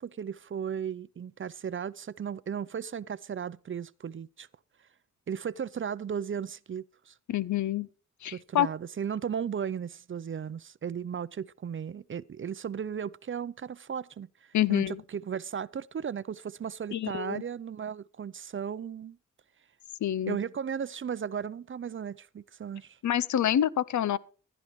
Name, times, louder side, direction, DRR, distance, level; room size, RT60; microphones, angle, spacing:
voice 1, 0.0-4.5 5.3-7.1 8.3-19.2 20.3-23.0, right 7 dB, 40° right, 0.5 m, -36 dB
voice 2, 7.3-7.9 8.2-8.7 14.5-15.0 16.9-17.4 20.0-20.4 23.0-24.2, left 11 dB, 70° left, 0.6 m, -27 dB
16.0 x 11.5 x 3.1 m
cardioid pair, 45°, 30 cm